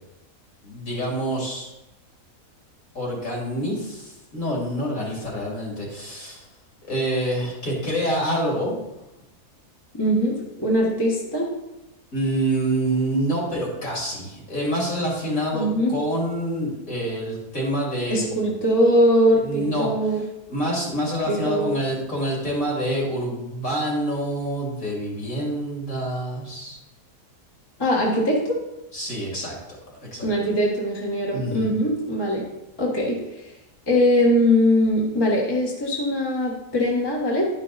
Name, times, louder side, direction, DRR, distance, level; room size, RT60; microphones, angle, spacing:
voice 1, 0.6-1.7 2.9-6.5 6.8-8.8 12.1-18.5 19.4-19.9 20.5-26.8 28.9-29.5 29.9-30.5 31.3-31.7, right 1 dB, 60° left, -3 dB, 3.0 m, -27 dB
voice 2, 9.9-11.5 15.5-15.9 18.1-20.2 21.3-21.8 27.8-28.6 30.2-32.4 32.8-33.5 33.9-37.5, equal, 15° left, -3 dB, 1.3 m, -21 dB
11.0 x 5.3 x 4.1 m, 0.94 s
omnidirectional pair, 1.7 m